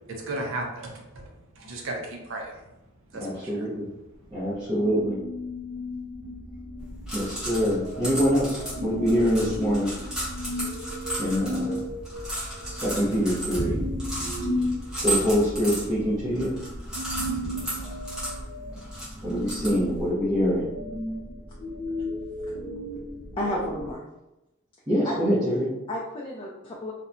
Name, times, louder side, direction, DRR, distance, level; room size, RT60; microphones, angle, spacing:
voice 1, 0.3-1.2 1.5-2.6 3.1-3.7, right 2 dB, 65° right, 0 dB, 0.5 m, -34 dB
voice 2, 3.1-3.9 4.3-5.2 7.1-9.9 11.2-11.8 12.7-13.8 15.0-16.5 19.2-20.7 24.9-25.7, equal, 20° right, -12 dB, 0.6 m, -25 dB
sound 1, 4.8-23.9, equal, 55° left, 0.8 m, -35 dB
sound 2, 6.8-20.1, right 1 dB, 5° right, 0.9 m, -35 dB
voice 3, 23.4-24.0 25.0-25.2 25.9-26.9, left 1 dB, 25° left, -4 dB, 0.3 m, -31 dB
2.8 x 2.1 x 2.5 m, 0.94 s
head